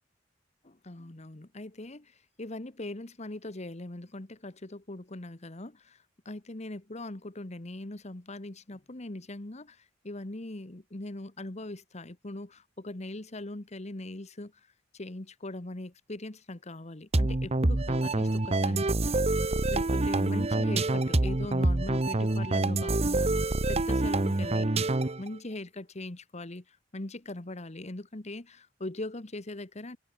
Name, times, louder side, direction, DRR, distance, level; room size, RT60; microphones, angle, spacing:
voice 1, 0.8-6.0 6.2-14.5 14.9-19.2 19.7-24.7 25.2-30.0, left 2 dB, 35° left, 1.4 m, -40 dB
sound 1, 17.1-25.3, right 2 dB, 35° right, 1.0 m, -26 dB
head